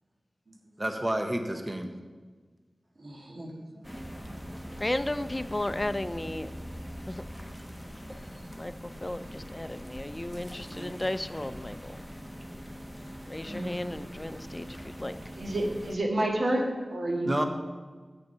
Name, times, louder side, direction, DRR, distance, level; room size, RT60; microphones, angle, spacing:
voice 1, 0.8-1.9 17.2-17.4, right 1 dB, 25° right, 5 dB, 0.9 m, -29 dB
voice 2, 3.0-3.9 4.2-4.4 4.6-4.7 10.5-10.9 13.4-13.8 15.3-17.4, right 1 dB, 70° right, 1 dB, 1.7 m, -31 dB
sound 1, 3.8-16.0, equal, 5° right, 1.2 m, -42 dB
voice 3, 4.8-6.5 7.1-7.2 8.6-8.7 9.0-11.9 13.3-14.7 15.0-15.1, left 1 dB, 25° left, 12 dB, 0.5 m, -34 dB
8.3 x 6.7 x 5.5 m, 1.4 s
wide cardioid pair, 45°, 0 cm